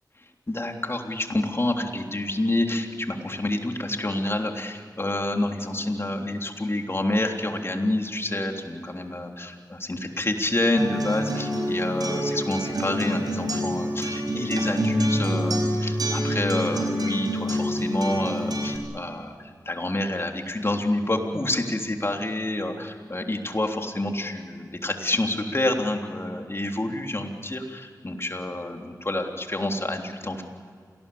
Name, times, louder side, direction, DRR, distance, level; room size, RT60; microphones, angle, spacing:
voice 1, 0.5-30.4, left 1 dB, 35° left, 3 dB, 3.4 m, -28 dB
Acoustic guitar, 10.8-18.8, equal, 75° right, 5.2 m, -26 dB
27.5 x 19.5 x 8.6 m, 2.2 s
cardioid pair, 50°, 7 cm